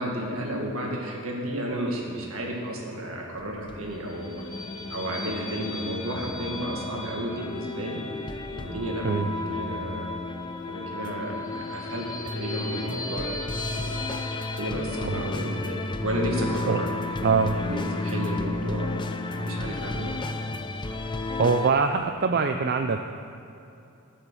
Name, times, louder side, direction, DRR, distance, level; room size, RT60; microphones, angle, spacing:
voice 1, 0.0-4.5 4.9-8.0 8.5-9.1 9.4-10.1 10.7-13.3 13.7-14.0 14.6-17.0 17.5-18.9 19.4-20.2, right 1 dB, 70° right, -1 dB, 2.0 m, -32 dB
sound 1, 3.4-21.7, left 2 dB, 20° left, 0.5 m, -33 dB
sound 2, 3.7-14.6, left 2 dB, 90° left, 2.7 m, -40 dB
voice 2, 17.2-17.6 21.4-23.1, right 5 dB, 50° right, 6 dB, 0.4 m, -23 dB
13.5 x 6.5 x 6.3 m, 2.7 s
head